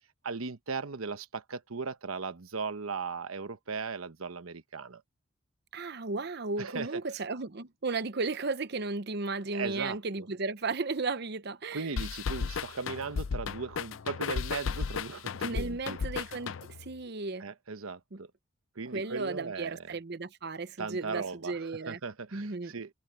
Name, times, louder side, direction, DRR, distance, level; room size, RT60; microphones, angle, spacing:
voice 1, 0.2-5.0 6.6-7.0 9.5-10.3 11.7-16.0 17.4-18.3 18.7-20.0 20.8-22.9, right 4 dB, 90° right, 1.1 m, -37 dB
voice 2, 5.7-11.9 15.4-17.5 18.1-18.2 18.9-22.0 22.3-22.7, right 3 dB, 50° right, 0.8 m, -35 dB
sound 1, 12.0-16.9, left 5 dB, 70° left, 0.5 m, -34 dB
head